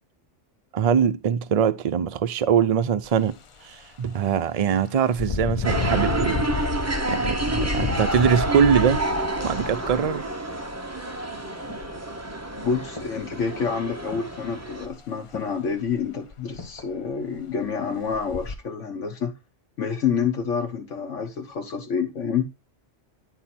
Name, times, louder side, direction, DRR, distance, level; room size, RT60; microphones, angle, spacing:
voice 1, 0.7-3.3 3.6-6.7 7.0-9.0 9.4-10.3, right 7 dB, 75° right, 0.3 m, -22 dB
Engine, 3.0-3.2 3.7-3.9 5.1-10.9 11.8-11.9 12.3-13.0 14.8-15.0 15.3-15.4 15.9-16.0 16.3-16.8 17.4-17.5 18.1-18.5, left 5 dB, 45° left, 0.4 m, -31 dB
sound 1, 5.6-14.9, right 2 dB, 15° right, 0.8 m, -29 dB
sound 2, 11.2-12.5 13.0-13.5 14.1-14.5 15.3-15.8 16.6-17.0 17.5-18.1 18.4-18.5, left 3 dB, 25° left, 1.6 m, -44 dB
voice 2, 12.6-19.3 19.8-22.5, left 6 dB, 80° left, 1.4 m, -28 dB
10.0 x 4.0 x 4.2 m
omnidirectional pair, 1.3 m